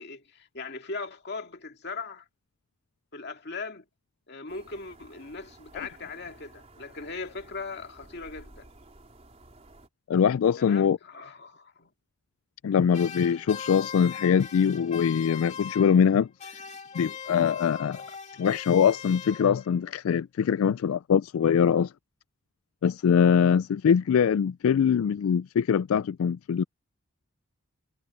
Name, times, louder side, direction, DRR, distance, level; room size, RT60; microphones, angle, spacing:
voice 1, 0.0-2.3 3.1-3.8 4.3-8.7 10.6-11.9 13.6-13.8, left 4 dB, 55° left, 2.2 m, -39 dB
sound 1, 4.5-9.9, right 2 dB, 30° right, 4.1 m, -53 dB
voice 2, 10.1-11.0 12.6-16.5 16.9-18.0 18.4-21.9 22.8-26.6, left 7 dB, 85° left, 0.3 m, -23 dB
sound 2, 12.9-16.1 16.4-19.8, left 7 dB, 35° left, 2.4 m, -40 dB
head